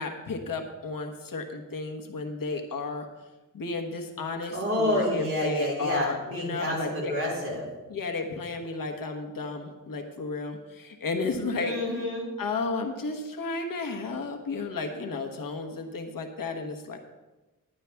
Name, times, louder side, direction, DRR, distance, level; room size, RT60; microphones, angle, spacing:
voice 1, 0.0-3.1 3.5-7.1 7.9-11.7 12.4-17.0, left 3 dB, 80° left, 4 dB, 1.3 m, -33 dB
voice 2, 4.5-7.7 11.6-12.3, left 1 dB, 40° right, -4 dB, 4.2 m, -29 dB
11.0 x 10.5 x 3.5 m, 1.1 s
wide cardioid pair, 90°, 33 cm